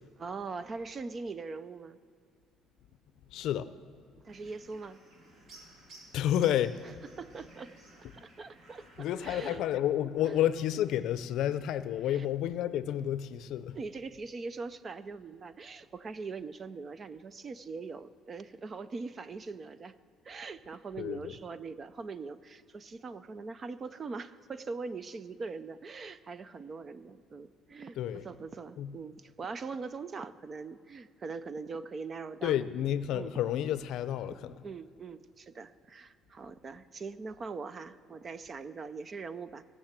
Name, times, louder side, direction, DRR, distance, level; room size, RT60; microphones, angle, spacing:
voice 1, 0.2-2.0 4.2-5.0 7.2-7.7 8.1-9.6 10.2-10.3 12.1-12.3 13.7-19.9 20.2-32.6 33.1-33.4 34.6-39.6, right 4 dB, 30° right, 0.5 m, -42 dB
voice 2, 3.3-3.7 6.1-6.8 9.0-13.8 21.0-21.3 28.0-28.2 28.8-28.9 32.4-34.5, left 11 dB, 65° left, 0.5 m, -30 dB
sound 1, 4.3-9.6, right 2 dB, 50° right, 2.4 m, -56 dB
17.5 x 6.6 x 7.4 m
cardioid pair, 130°, 0 cm